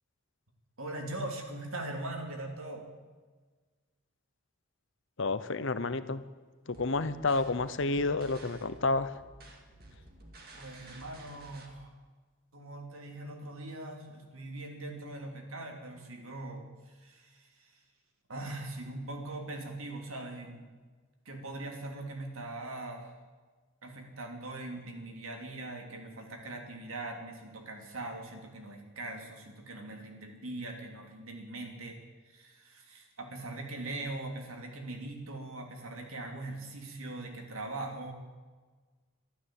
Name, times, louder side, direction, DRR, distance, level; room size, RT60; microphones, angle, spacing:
voice 1, 0.8-2.8 10.5-11.9 12.5-17.8 18.3-20.7 21.2-23.1 23.8-32.0 32.2-38.1, right 2 dB, 75° right, 2 dB, 3.1 m, -41 dB
voice 2, 5.2-6.2 6.7-9.1, left 3 dB, 60° left, 13 dB, 0.8 m, -30 dB
sound 1, 6.7-11.7, right 1 dB, 45° right, 2.3 m, -52 dB
13.0 x 12.5 x 7.8 m, 1.4 s
head